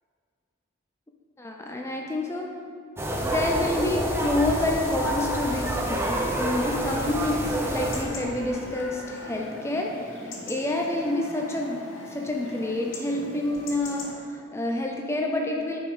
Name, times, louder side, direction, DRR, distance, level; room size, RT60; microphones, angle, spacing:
voice 1, 1.4-2.5 3.2-15.8, left 1 dB, 15° left, 1 dB, 0.5 m, -28 dB
sound 1, 3.0-8.0, right 1 dB, 10° right, 0.8 m, -28 dB
Chatter / Livestock farm animals working animals / Chirp tweet, 6.9-14.1, left 2 dB, 85° left, 1.6 m, -40 dB
9.4 x 4.8 x 5.5 m, 2.3 s
head